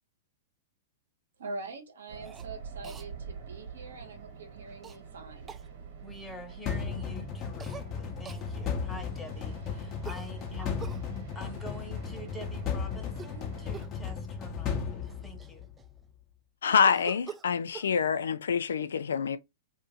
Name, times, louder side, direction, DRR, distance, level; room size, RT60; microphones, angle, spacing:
voice 1, 1.4-5.5, right 3 dB, 85° right, 1.1 m, -43 dB
sound 1, 2.1-13.9, right 6 dB, 60° right, 1.3 m, -47 dB
Cough, 2.2-2.5 2.8-3.1 4.8-5.0 5.5-5.7 7.6-7.9 8.3-8.5 10.0-11.0 13.1-13.4 13.7-14.0 14.7-14.8 15.0-16.0 16.8-17.9, right 7 dB, 20° right, 0.4 m, -45 dB
voice 2, 6.0-10.8 11.3-15.7, equal, 10° left, 1.1 m, -46 dB
sound 2, 6.7-15.8, left 6 dB, 35° left, 0.8 m, -35 dB
voice 3, 16.6-19.4, left 6 dB, 85° left, 0.4 m, -26 dB
2.7 x 2.6 x 3.7 m
hypercardioid pair, 120°, 0 cm